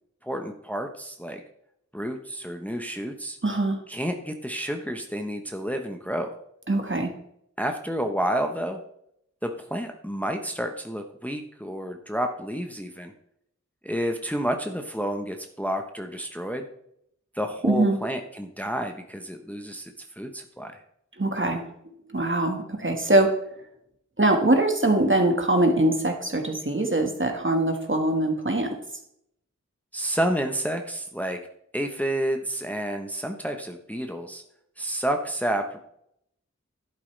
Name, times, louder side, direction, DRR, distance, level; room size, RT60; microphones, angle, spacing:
voice 1, 0.2-1.4 1.9-3.4 3.9-6.3 7.6-8.8 9.4-13.1 13.8-16.7 17.3-20.7 29.9-31.4 31.7-34.4 34.8-35.8, equal, 5° left, 4 dB, 1.0 m, -30 dB
voice 2, 3.4-3.8 6.7-7.1 17.6-18.0 21.2-21.7 22.1-23.3 24.2-28.7, right 1 dB, 40° right, 4 dB, 1.6 m, -22 dB
11.5 x 8.5 x 3.3 m, 0.72 s
wide cardioid pair, 45°, 30 cm